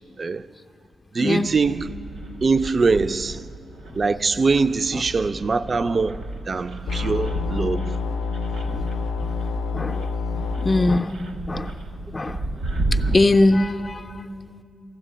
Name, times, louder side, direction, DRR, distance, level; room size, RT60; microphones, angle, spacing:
voice 1, 1.1-2.0 2.4-3.5 3.9-8.0, right 4 dB, 45° right, 0.4 m, -23 dB
sound 1, 1.4-13.2, right 2 dB, 80° right, 0.9 m, -33 dB
sound 2, 6.9-11.0, left 4 dB, 85° left, 0.4 m, -27 dB
voice 2, 10.6-11.1 11.5-11.7 12.1-12.4 13.1-14.0, left 2 dB, 30° left, 0.4 m, -20 dB
14.5 x 7.4 x 10.0 m
supercardioid pair, 55°, 0 cm